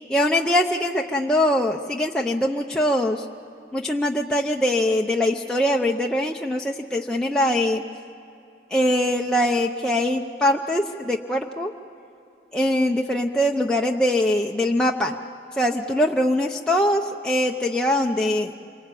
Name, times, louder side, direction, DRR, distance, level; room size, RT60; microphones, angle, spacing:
voice 1, 0.1-3.2 3.7-7.8 8.7-11.7 12.5-15.2 15.6-18.6, left 1 dB, 5° left, -1 dB, 0.7 m, -22 dB
27.5 x 23.5 x 8.4 m, 2.7 s
head